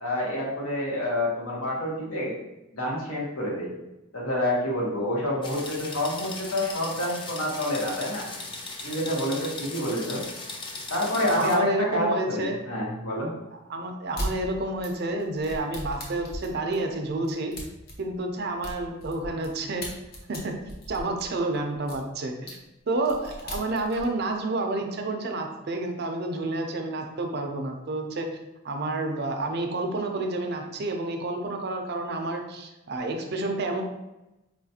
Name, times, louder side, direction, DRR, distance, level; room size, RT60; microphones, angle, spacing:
voice 1, 0.0-2.3 2.7-3.7 4.1-8.3 8.8-10.2 10.9-13.3, left 1 dB, 80° left, -4 dB, 1.1 m, -28 dB
sound 1, 5.4-11.5, left 2 dB, 25° left, 0.3 m, -38 dB
voice 2, 11.3-12.6 13.7-17.5 18.0-20.0 20.3-20.5 20.9-22.6 22.9-28.3 28.6-33.8, right 2 dB, 50° right, 3 dB, 0.4 m, -29 dB
sound 2, 14.1-14.3 14.8-19.5 19.8-22.0 22.5-22.6 22.9-24.1, equal, 45° left, 0.7 m, -37 dB
4.4 x 2.4 x 2.8 m, 0.96 s
head